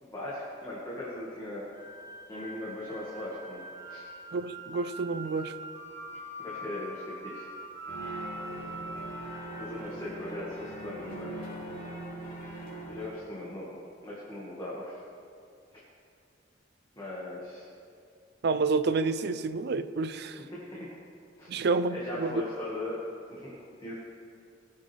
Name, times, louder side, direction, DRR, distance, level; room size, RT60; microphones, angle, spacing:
voice 1, 0.0-1.7 2.3-3.6 3.9-4.1 6.4-7.5 9.1-9.2 9.6-11.4 12.9-13.7 14.0-15.0 15.7-15.8 17.0-17.7 20.5-20.9 21.4-21.5 21.9-23.0 23.3-23.9, left 1 dB, 20° left, -7 dB, 1.9 m, -39 dB
sound 1, 1.7-10.9, right 1 dB, 20° right, 2.1 m, -44 dB
voice 2, 4.3-5.5 18.4-20.4 21.5-22.4, right 4 dB, 60° right, 12 dB, 0.5 m, -29 dB
sound 2, 7.9-13.1, right 1 dB, 45° left, 3.3 m, -41 dB
21.0 x 7.5 x 3.4 m, 2.4 s
head